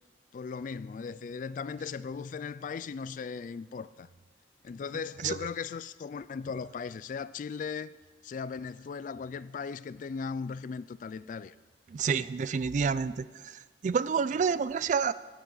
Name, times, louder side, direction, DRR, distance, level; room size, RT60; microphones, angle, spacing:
voice 1, 0.3-4.1 4.6-11.5, left 5 dB, 45° left, 0.3 m, -38 dB
voice 2, 11.9-15.1, right 6 dB, 45° right, 0.3 m, -29 dB
15.5 x 9.6 x 3.9 m
head